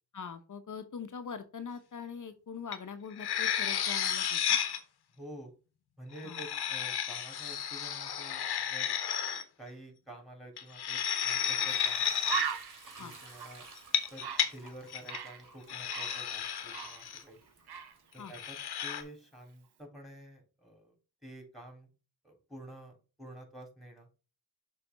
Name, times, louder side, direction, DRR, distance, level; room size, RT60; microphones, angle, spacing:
voice 1, 0.1-4.6 6.2-6.4 13.0-13.1 18.2-18.3, left 6 dB, 50° left, 8 dB, 1.0 m, -43 dB
sound 1, 2.7-2.8 3.1-4.8 6.1-9.4 10.6-12.4 13.8-14.5 14.9-15.2 15.7-17.2 18.3-19.0, left 9 dB, 80° left, 1.1 m, -32 dB
voice 2, 5.2-5.5 6.0-8.9 9.6-12.2 13.0-13.7 14.1-17.4 18.1-20.9 21.2-21.9 22.2-24.1, right 1 dB, ahead, 2 dB, 3.8 m, -49 dB
Bird, 11.4-11.5 11.9-12.0 12.2-15.4 15.7-17.4 17.7-18.0, right 7 dB, 80° right, 1.0 m, -38 dB
Sink (filling or washing) / Liquid, 11.7-18.6, right 3 dB, 55° right, 2.5 m, -55 dB
6.8 x 3.5 x 5.4 m, 0.34 s
cardioid pair, 50°, 38 cm